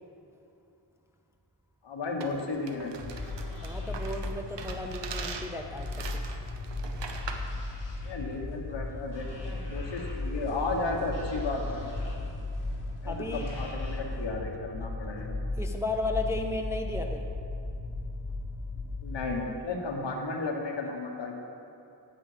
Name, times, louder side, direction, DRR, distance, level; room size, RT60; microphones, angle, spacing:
voice 1, 1.8-3.0 8.0-11.8 13.0-15.4 19.0-21.3, left 3 dB, 70° left, 1 dB, 1.4 m, -34 dB
sound 1, 2.2-7.5, right 5 dB, 70° right, 0.8 m, -42 dB
sound 2, 2.4-14.2, left 1 dB, 45° left, 2.4 m, -51 dB
sound 3, 3.0-19.3, left 2 dB, 85° left, 1.7 m, -36 dB
voice 2, 3.6-6.3 13.0-13.5 15.6-17.2, left 2 dB, 5° right, 3 dB, 0.4 m, -34 dB
8.8 x 8.5 x 5.0 m, 2.6 s
wide cardioid pair, 155°, 45 cm